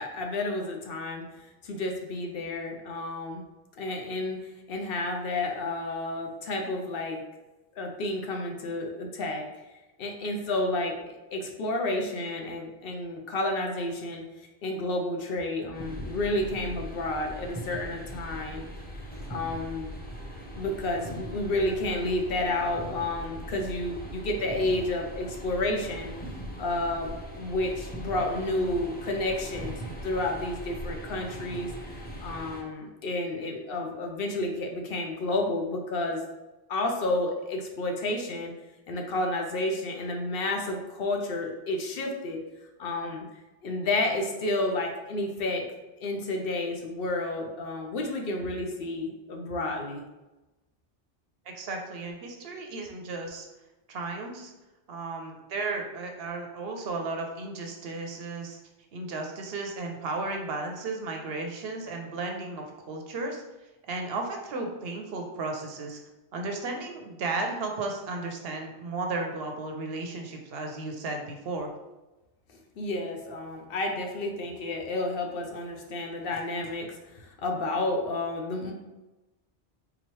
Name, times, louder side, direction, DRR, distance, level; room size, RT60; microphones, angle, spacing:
voice 1, 0.0-3.4 3.8-7.2 7.8-9.5 10.0-14.2 14.6-18.7 19.3-19.9 20.6-26.1 26.6-36.2 36.7-38.5 38.9-42.4 42.8-43.3 43.6-45.6 46.0-50.0 72.5-78.7, left 2 dB, 65° left, 2 dB, 0.7 m, -31 dB
sound 1, 15.7-32.6, equal, 10° left, 0.5 m, -40 dB
voice 2, 51.5-53.5 53.9-54.5 54.9-58.6 58.9-63.4 63.9-66.0 66.3-71.7, right 3 dB, 65° right, 3 dB, 0.7 m, -34 dB
3.7 x 3.0 x 3.0 m, 1.0 s
omnidirectional pair, 1.2 m